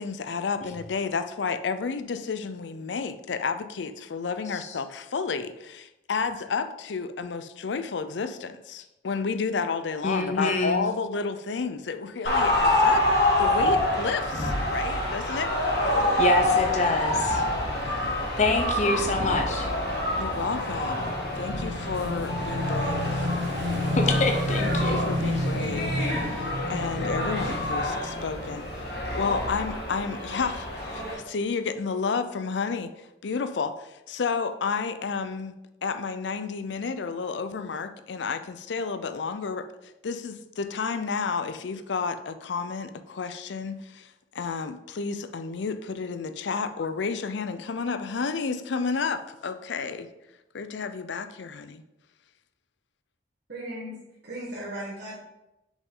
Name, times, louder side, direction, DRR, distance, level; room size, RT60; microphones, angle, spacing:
voice 1, 0.0-15.5 17.7-18.2 20.2-23.3 24.0-24.2 24.7-35.5 35.8-39.7 40.0-50.1 50.5-51.8, left 5 dB, 80° left, 10 dB, 0.5 m, -31 dB
voice 2, 10.0-10.8 16.2-17.4 18.4-19.7 23.9-25.6, left 3 dB, 40° left, 3 dB, 0.7 m, -26 dB
sound 1, 12.3-31.2, left 1 dB, 60° left, 2.0 m, -27 dB
Motorcycle / Engine, 20.7-29.1, left 1 dB, 85° right, 1.1 m, -30 dB
voice 3, 53.5-54.0 54.2-55.2, right 1 dB, 60° right, -8 dB, 1.8 m, -36 dB
6.3 x 5.2 x 3.8 m, 0.92 s
head